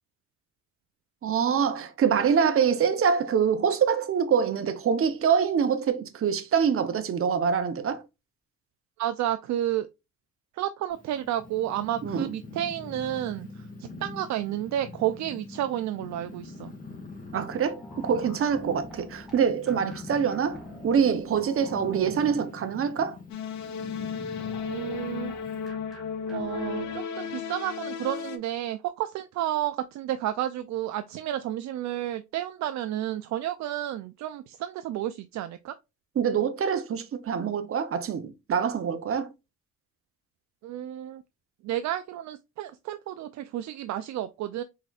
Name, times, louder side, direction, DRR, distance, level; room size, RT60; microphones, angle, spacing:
voice 1, 1.2-8.0 12.0-12.3 17.3-23.2 36.2-39.3, right 7 dB, 45° right, 0.8 m, -25 dB
voice 2, 9.0-9.9 10.5-16.7 24.6-25.3 26.3-35.8 40.6-41.2 41.6-44.6, right 12 dB, 65° right, 0.4 m, -31 dB
Purr, 10.9-25.7, left 3 dB, 25° left, 1.9 m, -43 dB
sound 1, 17.5-22.8 24.4-27.0, equal, ahead, 2.1 m, -49 dB
sound 2, 23.3-28.4, left 7 dB, 65° left, 0.7 m, -34 dB
4.2 x 3.9 x 2.4 m
cardioid pair, 90°, 30 cm